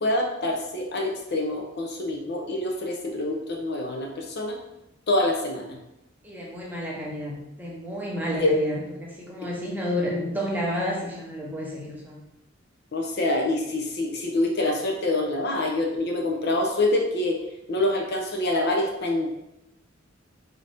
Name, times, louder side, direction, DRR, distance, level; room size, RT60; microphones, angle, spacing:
voice 1, 0.0-4.6 5.1-5.8 8.4-8.6 12.9-17.4 17.7-19.3, left 2 dB, 55° left, 2 dB, 0.6 m, -26 dB
voice 2, 6.2-12.2, equal, 10° right, -4 dB, 0.7 m, -31 dB
3.9 x 2.7 x 3.4 m, 0.86 s
head